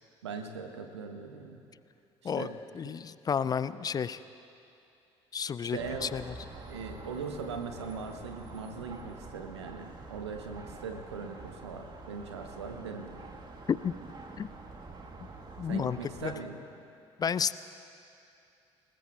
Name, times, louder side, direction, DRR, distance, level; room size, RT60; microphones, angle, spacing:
voice 1, 0.2-1.6 2.2-3.0 5.6-6.2 6.7-13.3 15.6-16.6, right 5 dB, 75° right, 6 dB, 1.1 m, -40 dB
voice 2, 2.8-4.2 5.3-6.3 13.7-13.9 14.4-14.5 15.6-16.3 17.2-17.5, left 7 dB, 25° left, 16 dB, 0.4 m, -31 dB
sound 1, 5.8-16.4, right 3 dB, 30° right, 1.6 m, -47 dB
27.0 x 20.0 x 2.4 m, 2.7 s
figure-of-eight pair, 50°, 14 cm